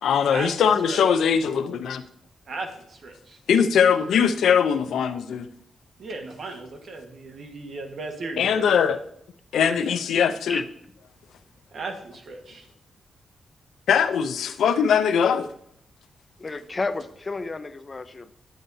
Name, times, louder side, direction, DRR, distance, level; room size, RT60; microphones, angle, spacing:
voice 1, 0.0-2.0 3.5-5.5 8.4-9.0 9.5-10.6 13.9-15.5, left 7 dB, 90° left, 10 dB, 0.5 m, -21 dB
voice 2, 2.5-3.4 6.0-8.9 11.7-12.7, right 3 dB, 60° right, 3 dB, 1.4 m, -36 dB
voice 3, 16.4-18.3, left 3 dB, 30° left, 10 dB, 0.5 m, -31 dB
9.1 x 8.7 x 2.7 m, 0.69 s
cardioid pair, 100°, 0 cm